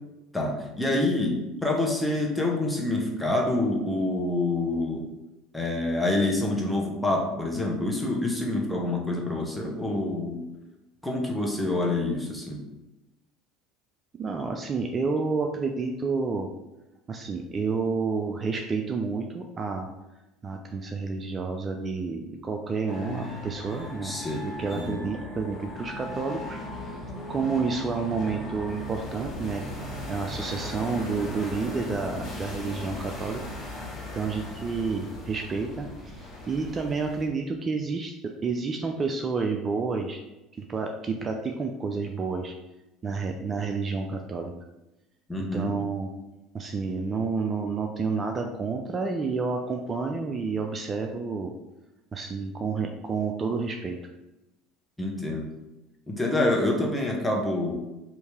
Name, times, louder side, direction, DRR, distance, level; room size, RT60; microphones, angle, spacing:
voice 1, 0.3-5.1 5.5-10.4 11.0-12.6 24.0-24.5 24.7-25.0 45.3-45.7 55.0-55.5 56.1-57.8, left 2 dB, 5° left, -1 dB, 0.9 m, -27 dB
voice 2, 14.1-16.5 17.1-19.9 20.4-26.6 27.3-29.6 30.1-33.4 34.1-38.1 38.4-40.2 40.5-42.5 43.0-44.5 45.5-46.1 46.5-51.5 52.1-54.0, right 4 dB, 35° right, 3 dB, 0.3 m, -30 dB
sound 1, 22.9-37.3, left 1 dB, 35° left, 1.4 m, -38 dB
3.0 x 2.7 x 3.5 m, 0.99 s
hypercardioid pair, 70°, 0 cm